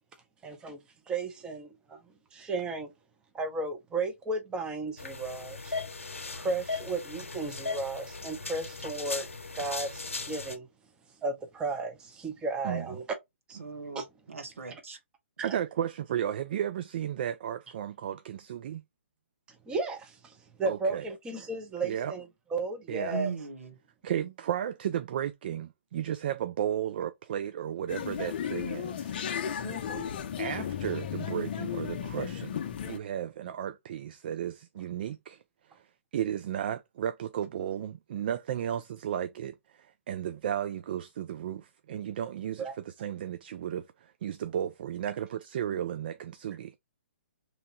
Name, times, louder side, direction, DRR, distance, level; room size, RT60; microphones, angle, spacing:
voice 1, 0.4-2.0 2.3-2.9 3.3-5.8 6.3-9.3 9.5-10.7 11.2-13.0 13.5-13.6 13.9-14.0 19.7-23.3 29.6-30.0 42.6-42.7, right 3 dB, 10° right, 0.7 m, -34 dB
sound 1, 5.0-10.6, left 4 dB, 80° left, 0.8 m, -38 dB
voice 2, 13.6-15.0 23.1-23.7, right 5 dB, 75° right, 1.1 m, -38 dB
voice 3, 15.4-18.8 20.6-21.0 21.8-22.1 22.9-23.2 24.0-29.2 30.4-35.4 35.7-35.8 36.1-46.8, right 10 dB, 45° right, 0.3 m, -34 dB
sound 2, 27.9-33.0, left 8 dB, 45° left, 0.5 m, -34 dB
3.0 x 2.7 x 3.7 m
figure-of-eight pair, 135°, 7 cm